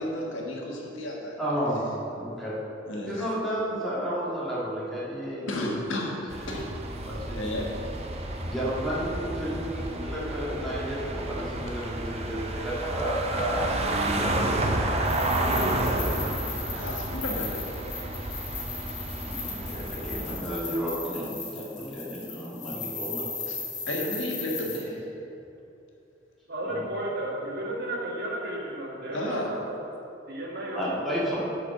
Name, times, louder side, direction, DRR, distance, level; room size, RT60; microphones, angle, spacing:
voice 1, 0.0-1.4 2.9-3.3 5.5-6.7 7.3-7.7 16.7-17.8 23.5-23.6 23.9-25.1 29.1-29.5, left 1 dB, 80° left, -1 dB, 1.6 m, -32 dB
voice 2, 1.4-2.6 3.1-5.5 6.4-6.6 7.0-7.4 8.4-15.8 19.2-23.5 26.7-26.8 30.8-31.4, equal, ahead, -8 dB, 2.0 m, -32 dB
sound 1, 6.3-20.4, right 1 dB, 35° right, 0.7 m, -31 dB
sound 2, 15.0-24.8, left 4 dB, 40° left, 1.9 m, -37 dB
voice 3, 26.5-29.4 30.3-31.0, right 1 dB, 55° right, -3 dB, 1.7 m, -33 dB
8.3 x 4.9 x 6.5 m, 2.8 s
head